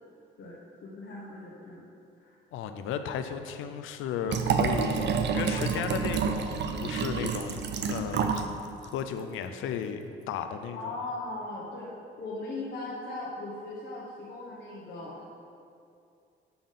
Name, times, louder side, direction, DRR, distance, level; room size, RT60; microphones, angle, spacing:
voice 1, 0.4-1.9 2.2-2.3 7.9-8.1 8.4-8.8 10.7-15.2, left 2 dB, 60° left, -6 dB, 1.2 m, -39 dB
voice 2, 2.5-8.5 8.8-10.9, left 7 dB, 85° left, 8 dB, 0.5 m, -35 dB
Liquid, 4.3-8.5 8.8-8.9, right 6 dB, 60° right, 0.5 m, -28 dB
6.9 x 3.7 x 5.6 m, 2.5 s
cardioid pair, 90°, 20 cm